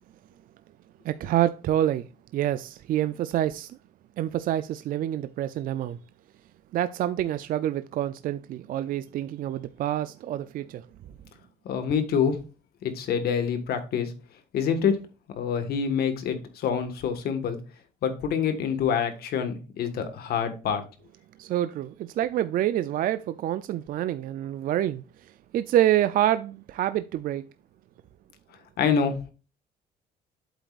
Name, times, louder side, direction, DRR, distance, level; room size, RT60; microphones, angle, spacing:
voice 1, 1.0-3.8 4.2-6.0 6.7-10.8 21.4-25.0 25.5-27.4, right 12 dB, 55° right, 0.4 m, -27 dB
voice 2, 11.7-12.4 12.8-14.1 14.5-15.0 15.3-17.6 18.0-20.8 28.8-29.3, left 7 dB, 70° left, 1.6 m, -26 dB
8.1 x 7.8 x 2.4 m
cardioid pair, 110°, 17 cm